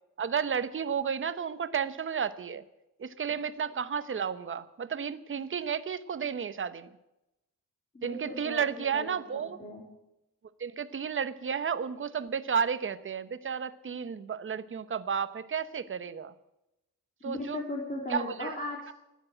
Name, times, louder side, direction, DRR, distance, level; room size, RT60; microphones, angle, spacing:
voice 1, 0.2-2.6 3.0-6.9 8.0-9.6 10.6-16.3 17.2-17.6 18.1-18.5, right 7 dB, 35° right, 13 dB, 1.0 m, -32 dB
voice 2, 7.9-9.8 17.2-18.9, left 2 dB, 25° left, -1 dB, 3.2 m, -37 dB
13.5 x 10.5 x 9.8 m, 0.92 s
cardioid pair, 130°, 35 cm